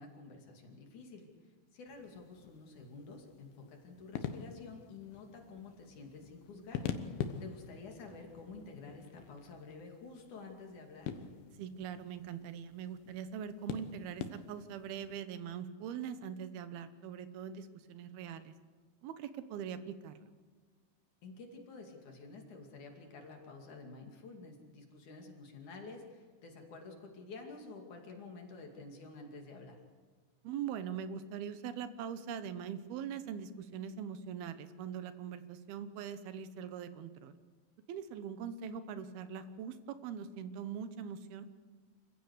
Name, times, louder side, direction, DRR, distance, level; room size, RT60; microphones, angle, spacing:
voice 1, 0.0-6.9 7.2-11.1 21.2-29.8, left 3 dB, 55° left, 2 dB, 3.8 m, -50 dB
sound 1, 1.9-15.2, left 8 dB, 85° left, 3.1 m, -45 dB
voice 2, 11.6-18.5 19.0-20.3 30.4-37.3 37.9-39.8 40.0-41.5, right 8 dB, 90° right, 11 dB, 3.0 m, -42 dB
27.0 x 15.5 x 8.2 m, 1.5 s
omnidirectional pair, 4.3 m